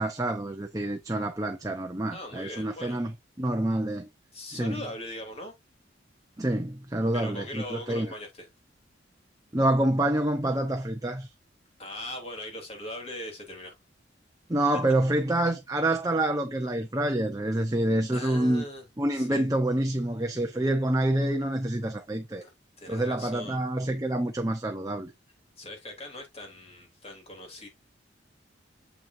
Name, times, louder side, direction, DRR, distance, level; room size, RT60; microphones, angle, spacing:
voice 1, 0.0-4.1 4.5-4.8 6.4-8.1 9.5-11.3 14.5-18.6 19.0-22.4 22.8-25.1, right 1 dB, 20° right, 0.7 m, -27 dB
voice 2, 2.1-3.0 4.3-5.5 7.1-8.5 11.8-13.7 18.1-18.8 19.1-19.5 22.4-22.5 22.8-23.6 25.6-27.7, left 1 dB, 35° left, 3.0 m, -40 dB
7.4 x 5.8 x 2.6 m
head